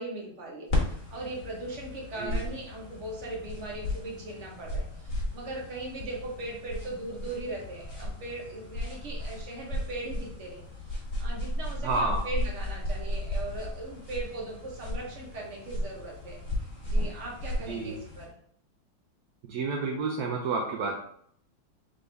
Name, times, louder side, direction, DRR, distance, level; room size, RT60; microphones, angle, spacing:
voice 1, 0.0-10.6 10.9-16.4 16.8-18.3, right 2 dB, 40° right, -2 dB, 1.2 m, -39 dB
sound 1, 0.7-18.3, left 1 dB, 45° left, 1.3 m, -35 dB
voice 2, 2.2-2.5 11.8-12.2 17.7-17.9 19.4-21.0, right 3 dB, 75° right, 1 dB, 0.9 m, -30 dB
3.8 x 3.6 x 3.4 m, 0.63 s
omnidirectional pair, 2.2 m